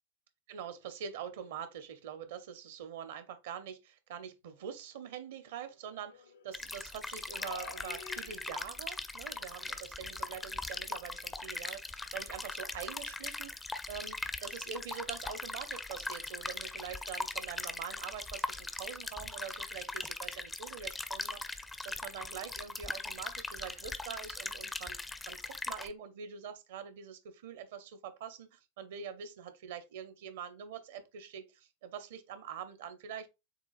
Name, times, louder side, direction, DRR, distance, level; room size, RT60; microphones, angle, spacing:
voice 1, 0.5-25.0 25.2-33.3, right 8 dB, 55° right, 0.6 m, -45 dB
sound 1, 4.6-4.8 5.4-6.5 7.3-8.7, left 4 dB, 65° left, 0.6 m, -49 dB
sound 2, 6.5-25.9, left 3 dB, 10° left, 0.4 m, -40 dB
6.9 x 2.4 x 2.4 m
figure-of-eight pair, 90°, 0 cm